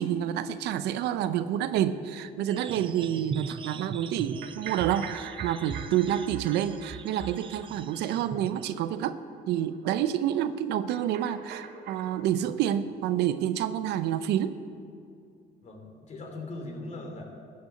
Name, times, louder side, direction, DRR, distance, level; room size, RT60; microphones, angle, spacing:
voice 1, 0.0-9.2 9.5-14.6, right 10 dB, 80° right, 13 dB, 0.6 m, -28 dB
sound 1, 2.5-8.7, right 7 dB, 30° right, 0.4 m, -40 dB
sound 2, 4.2-8.7 9.0-9.1 9.4-9.5 9.7-9.8 10.9-12.2, right 7 dB, 65° right, 1.2 m, -44 dB
voice 2, 15.6-17.2, left 2 dB, 45° left, 2 dB, 2.8 m, -40 dB
13.0 x 6.8 x 7.7 m, 2.5 s
cardioid pair, 110°, 17 cm